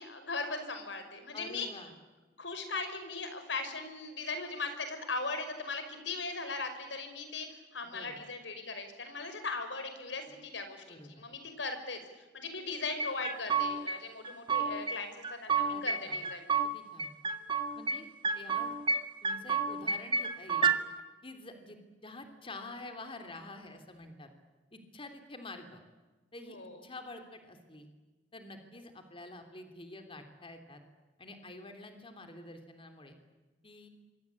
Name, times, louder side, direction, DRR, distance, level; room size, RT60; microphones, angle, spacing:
voice 1, 0.0-1.7 2.4-16.5 26.5-26.8, left 3 dB, 80° left, 8 dB, 5.6 m, -39 dB
voice 2, 1.3-1.9 7.8-8.2 10.9-11.2 15.7-16.2 16.7-17.1 17.7-18.1 18.3-18.7 19.2-20.7 21.2-24.3 24.7-25.8 26.3-26.6 26.8-27.9 28.3-30.8 31.2-33.2 33.6-33.9, left 2 dB, 30° left, 7 dB, 3.3 m, -48 dB
sound 1, 13.0-14.0 14.2-15.0 15.2-16.7 17.0-18.0 18.2-19.0 19.2-20.8, right 5 dB, 30° right, 1.9 m, -30 dB
27.0 x 24.5 x 8.6 m, 1.2 s
head